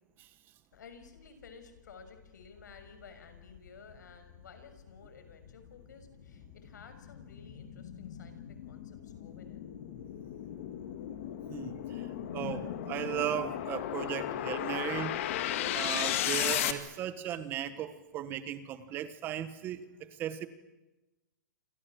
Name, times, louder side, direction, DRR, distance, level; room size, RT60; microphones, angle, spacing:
voice 1, 0.7-9.7, left 5 dB, 70° left, 8 dB, 6.5 m, -54 dB
sound 1, 2.0-2.1 2.6-16.7, left 11 dB, 45° left, 2.2 m, -36 dB
voice 2, 11.5-15.2 15.7-20.5, right 11 dB, 20° right, 12 dB, 1.3 m, -37 dB
28.5 x 26.0 x 7.5 m, 1.1 s
hypercardioid pair, 160°, 10 cm